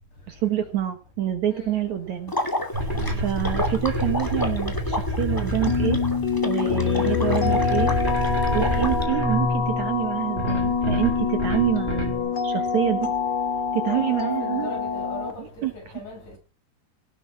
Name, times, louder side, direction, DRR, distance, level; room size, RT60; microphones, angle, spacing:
voice 1, 0.3-2.3 3.2-6.0 6.4-8.0 8.5-13.1 13.7-14.7 15.4-15.7, right 12 dB, 60° right, 2.5 m, -27 dB
voice 2, 1.5-1.8 2.9-3.2 6.6-6.9 8.6-8.9 13.8-16.4, left 3 dB, 55° left, 8.2 m, -39 dB
Water / Liquid, 2.3-9.0, left 1 dB, 5° left, 1.9 m, -30 dB
sound 1, 2.7-12.2, equal, 15° right, 3.8 m, -27 dB
sound 2, 5.7-15.3, left 6 dB, 35° left, 2.3 m, -26 dB
18.0 x 8.8 x 5.9 m
omnidirectional pair, 4.2 m